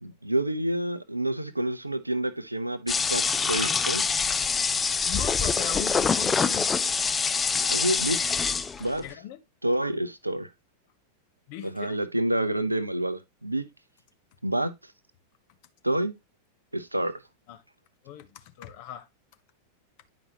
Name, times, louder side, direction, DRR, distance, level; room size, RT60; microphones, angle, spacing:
voice 1, 0.0-4.0 7.7-8.4 8.8-9.0 9.6-10.5 11.6-13.7 14.4-14.7 15.8-16.1 16.7-17.1, right 1 dB, 85° right, 0.7 m, -28 dB
sound 1, 2.9-9.0, left 5 dB, 15° left, 0.4 m, -25 dB
voice 2, 5.0-6.7 9.0-9.4 11.5-12.0 17.5-17.6 18.0-19.1, left 10 dB, 50° left, 0.9 m, -38 dB
9.6 x 5.2 x 2.9 m
figure-of-eight pair, 90°, 0 cm